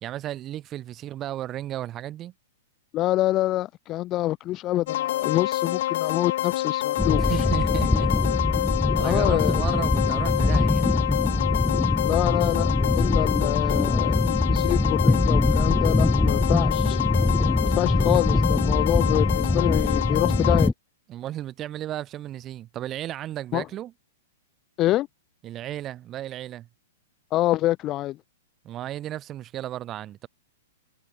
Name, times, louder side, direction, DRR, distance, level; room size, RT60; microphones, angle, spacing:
voice 1, 0.0-2.3 7.1-8.1 8.6-10.9 21.1-23.9 25.4-26.7 28.6-30.3, right 12 dB, 30° right, 2.7 m, -34 dB
voice 2, 2.9-7.5 9.0-9.6 12.0-17.0 17.6-20.7 23.5-23.7 24.8-25.1 27.3-28.2, left 15 dB, 35° left, 1.0 m, -26 dB
sound 1, 4.9-20.7, left 14 dB, 60° left, 0.8 m, -28 dB
sound 2, 7.0-20.7, left 2 dB, 5° left, 1.9 m, -23 dB
hypercardioid pair, 120°, 0 cm